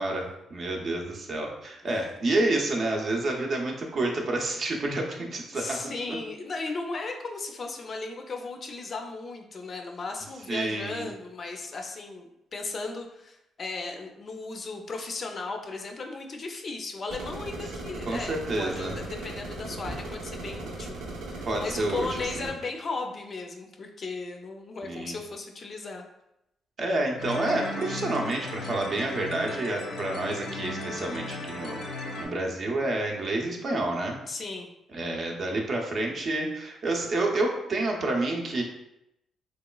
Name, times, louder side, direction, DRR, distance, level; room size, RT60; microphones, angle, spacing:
voice 1, 0.0-5.8 6.1-6.2 10.5-11.1 18.1-18.9 21.4-22.1 22.4-22.5 24.8-25.1 26.8-31.8 32.2-34.2 34.9-38.6, right 2 dB, 45° right, 0 dB, 0.6 m, -29 dB
voice 2, 5.5-21.0 21.3-26.0 34.3-34.7, left 3 dB, 40° left, 3 dB, 0.4 m, -36 dB
sound 1, 17.1-22.5, right 2 dB, 85° right, 0.7 m, -38 dB
sound 2, 27.2-32.3, left 2 dB, 85° left, 0.6 m, -36 dB
3.0 x 2.9 x 2.2 m, 0.83 s
cardioid pair, 110°, 0 cm